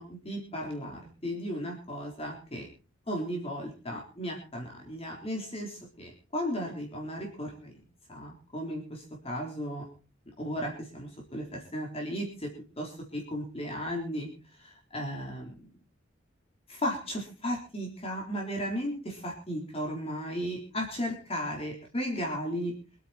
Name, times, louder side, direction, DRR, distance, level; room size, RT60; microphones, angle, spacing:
voice 1, 0.0-2.7 3.1-7.7 8.1-9.8 10.4-12.5 12.8-14.3 14.6-15.5 16.7-22.7, equal, 30° left, 0 dB, 4.0 m, -35 dB
25.5 x 9.2 x 4.4 m, 0.37 s
head